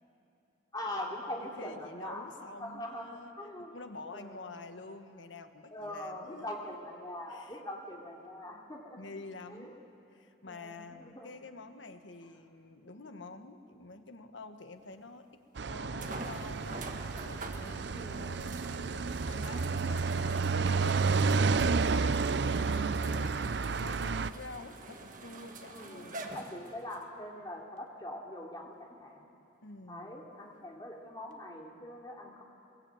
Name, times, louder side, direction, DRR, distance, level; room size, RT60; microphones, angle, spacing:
voice 1, 0.7-2.2 2.6-3.7 4.1-4.4 5.7-9.0 9.5-9.7 10.4-11.3 17.9-18.4 25.7-29.2 29.9-32.4, left 1 dB, 20° left, -1 dB, 3.0 m, -42 dB
voice 2, 1.4-3.3 3.6-6.8 7.3-7.6 9.0-15.3 15.7-26.1 29.6-30.3, left 3 dB, 80° left, 7 dB, 1.5 m, -48 dB
sound 1, 14.9-15.0 16.0-27.0 27.8-27.9 31.3-31.4, right 2 dB, 45° right, 1.5 m, -46 dB
sound 2, 15.6-24.3, right 4 dB, 65° right, 0.5 m, -30 dB
22.0 x 21.5 x 8.9 m, 2.7 s
head